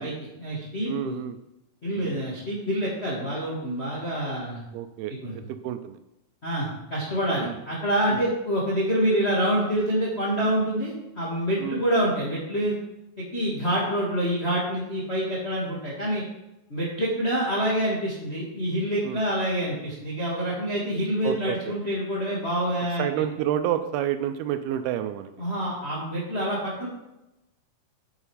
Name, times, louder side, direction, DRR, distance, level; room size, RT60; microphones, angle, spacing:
voice 1, 0.0-1.2 1.8-4.6 5.2-5.3 6.4-12.7 13.3-16.2 16.7-23.1 25.4-26.9, equal, 30° left, -6 dB, 1.2 m, -27 dB
voice 2, 0.9-1.4 2.0-2.2 4.7-5.1 5.6-6.0 7.4-7.6 11.6-11.8 19.0-19.2 21.2-21.7 23.0-25.3, right 10 dB, 80° right, 9 dB, 2.4 m, -29 dB
8.2 x 7.5 x 5.0 m, 0.92 s
omnidirectional pair, 4.7 m